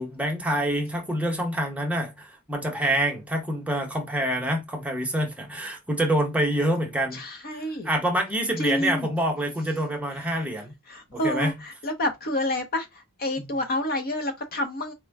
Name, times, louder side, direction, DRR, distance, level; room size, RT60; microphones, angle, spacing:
voice 1, 0.0-7.2 7.8-10.7 11.1-11.5 13.4-13.5, right 1 dB, 5° right, 0.8 m, -26 dB
voice 2, 7.1-7.9 8.6-9.1 10.1-10.5 10.9-14.9, left 1 dB, 45° left, 0.7 m, -29 dB
4.4 x 2.2 x 3.4 m
head